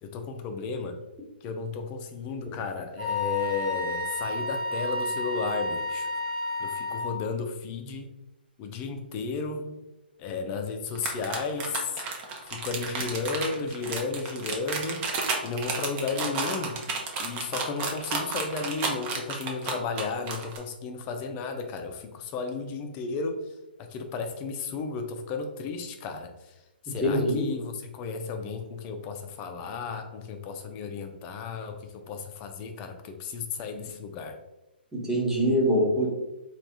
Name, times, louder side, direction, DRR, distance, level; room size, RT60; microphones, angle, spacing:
voice 1, 0.0-1.0 1.4-6.1 6.6-8.1 8.6-9.8 10.2-12.0 12.5-15.1 15.4-16.8 17.2-23.4 23.9-26.3 26.8-34.4, left 4 dB, 25° left, 5 dB, 0.5 m, -33 dB
Wind instrument woodwind instrument, 3.0-7.2, left 2 dB, 50° right, 1.4 m, -31 dB
sound 1, 10.9-20.6, right 4 dB, 25° right, 0.7 m, -31 dB
voice 2, 27.0-27.5 34.9-36.1, equal, 5° right, -5 dB, 1.1 m, -24 dB
3.3 x 2.5 x 4.1 m, 0.99 s
figure-of-eight pair, 130°, 6 cm